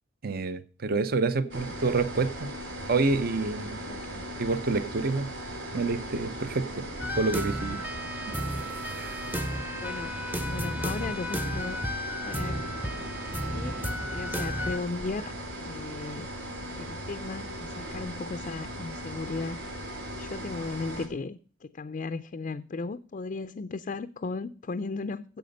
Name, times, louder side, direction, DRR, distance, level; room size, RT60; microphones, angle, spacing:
voice 1, 0.2-2.5 2.9-3.8 4.4-5.3 5.7-6.9 7.1-7.9 9.0-9.2, right 3 dB, 50° right, 0.6 m, -28 dB
voice 2, 1.4-1.9 3.8-4.3 9.8-11.8 12.2-12.6 13.5-15.3 15.7-16.3 16.8-19.6 20.2-25.2, left 3 dB, 40° left, 0.4 m, -36 dB
sound 1, 1.5-21.1, equal, 85° right, 2.8 m, -38 dB
sound 2, 7.0-14.8, equal, 10° right, 0.6 m, -33 dB
9.3 x 7.8 x 6.5 m
head